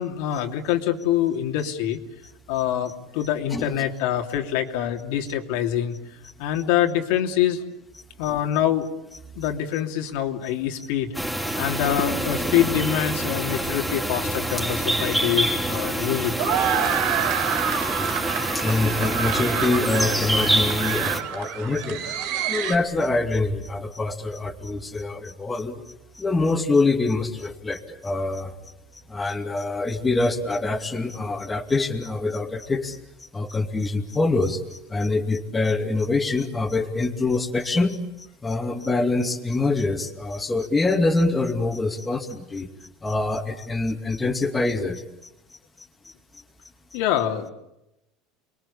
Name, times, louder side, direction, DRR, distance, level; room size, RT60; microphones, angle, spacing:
voice 1, 0.0-2.0 2.5-6.0 6.4-7.6 8.2-8.9 9.4-11.2 11.6-16.5 46.9-47.5, left 11 dB, 75° left, 3 dB, 2.9 m, -25 dB
voice 2, 3.5-3.8 8.2-8.3 9.4-9.5 10.8-10.9 11.5-11.6 18.5-22.0 22.5-25.8 26.1-28.5 29.1-33.0 33.3-38.0 38.4-42.7 43.0-45.0, left 3 dB, 15° left, 3 dB, 2.6 m, -25 dB
sound 1, 11.1-21.2, right 1 dB, ahead, 3.9 m, -26 dB
sound 2, 14.8-22.7, right 9 dB, 70° right, 4.6 m, -28 dB
30.0 x 22.0 x 8.6 m, 0.87 s
supercardioid pair, 130°, 0 cm